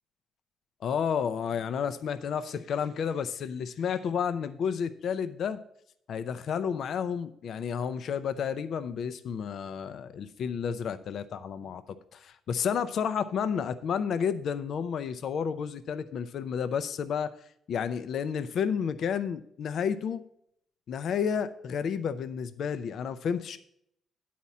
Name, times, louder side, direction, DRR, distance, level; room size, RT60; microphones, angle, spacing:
voice 1, 0.8-5.6 6.1-17.3 17.7-20.2 20.9-23.6, left 7 dB, 65° left, 12 dB, 0.4 m, -31 dB
9.4 x 4.3 x 7.1 m, 0.70 s
cardioid pair, 90°, 0 cm